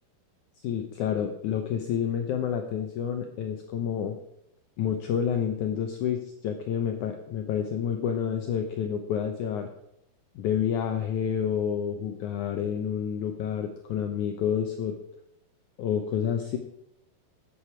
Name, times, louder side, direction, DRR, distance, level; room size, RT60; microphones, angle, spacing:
voice 1, 0.6-4.2 4.8-9.7 10.4-15.0 15.8-16.6, left 8 dB, 75° left, 5 dB, 1.9 m, -29 dB
11.5 x 8.8 x 4.5 m, 0.79 s
omnidirectional pair, 4.2 m